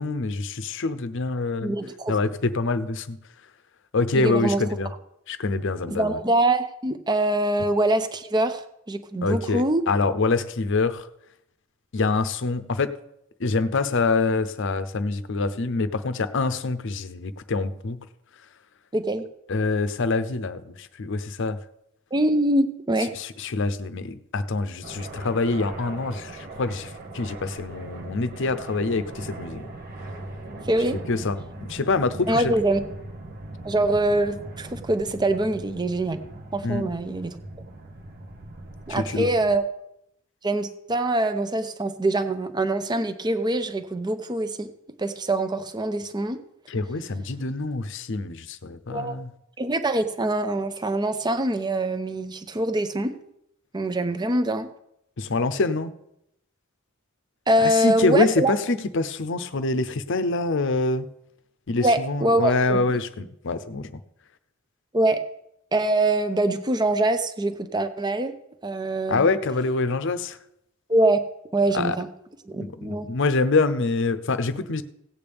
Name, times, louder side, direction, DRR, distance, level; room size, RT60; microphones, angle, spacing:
voice 1, 0.0-1.7 2.1-3.2 3.9-4.9 5.3-6.2 9.2-11.1 11.9-12.9 13.4-18.0 19.5-21.6 23.1-29.7 31.1-31.4 31.7-32.5 36.6-36.9 38.9-39.3 46.7-49.3 55.2-55.9 57.6-61.1 61.7-63.9 69.1-70.4 71.7-72.0 72.6-74.8, left 3 dB, 60° left, 12 dB, 0.7 m, -25 dB
voice 2, 1.6-2.2 4.1-4.6 5.9-8.6 8.9-9.8 18.9-19.3 22.1-23.2 30.7-31.0 32.3-32.8 33.6-36.2 36.5-37.3 38.9-39.6 40.4-44.7 45.0-46.4 48.9-49.2 49.6-53.2 53.7-54.7 57.5-58.5 61.8-62.8 64.9-65.2 65.7-68.3 68.6-69.3 70.9-71.2 71.5-72.1 72.4-73.1, right 1 dB, 20° right, 10 dB, 0.7 m, -24 dB
sound 1, 24.8-39.6, right 2 dB, 50° right, 1.0 m, -40 dB
16.5 x 8.6 x 3.5 m, 0.79 s
head